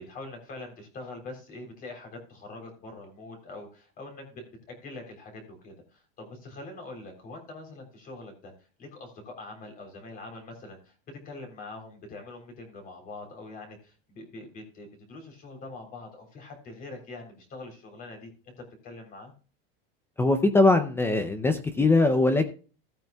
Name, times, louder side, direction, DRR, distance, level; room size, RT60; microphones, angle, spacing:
voice 1, 0.0-8.5 8.8-10.9 11.2-18.5 18.8-19.3, left 2 dB, 30° left, 3 dB, 3.4 m, -44 dB
voice 2, 20.2-22.5, left 2 dB, 10° left, 9 dB, 0.5 m, -21 dB
16.0 x 8.9 x 2.3 m, 0.36 s
supercardioid pair, 170°, 29 cm